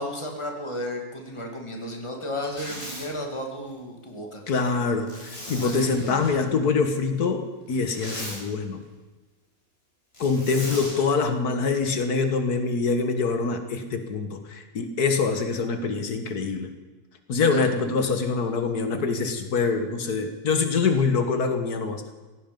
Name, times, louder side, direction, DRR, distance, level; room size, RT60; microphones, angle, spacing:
voice 1, 0.0-4.4 5.4-6.3 17.5-17.6, left 1 dB, 20° left, 2 dB, 2.4 m, -34 dB
Zipper (clothing), 2.4-3.1 5.1-6.4 7.7-8.4 10.1-11.0, equal, 40° left, 5.6 m, -38 dB
voice 2, 4.5-8.8 10.2-16.7 17.3-22.0, left 4 dB, 80° left, 7 dB, 1.9 m, -25 dB
17.0 x 15.5 x 5.3 m, 1.2 s
omnidirectional pair, 1.6 m